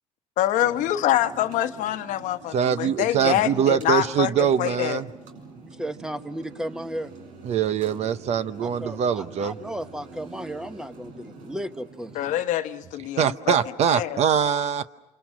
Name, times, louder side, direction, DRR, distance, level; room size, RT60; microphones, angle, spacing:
voice 1, 0.4-5.0 12.1-13.6 13.9-14.2, left 12 dB, 70° left, 1.0 m, -25 dB
sound 1, 0.6-12.4, right 3 dB, 70° right, 3.8 m, -45 dB
voice 2, 2.5-5.1 7.4-9.6 13.2-14.9, right 8 dB, 55° right, 0.9 m, -23 dB
voice 3, 5.6-7.1 8.6-12.1, right 1 dB, 5° right, 1.0 m, -34 dB
28.0 x 27.0 x 6.3 m
cardioid pair, 105°, 14 cm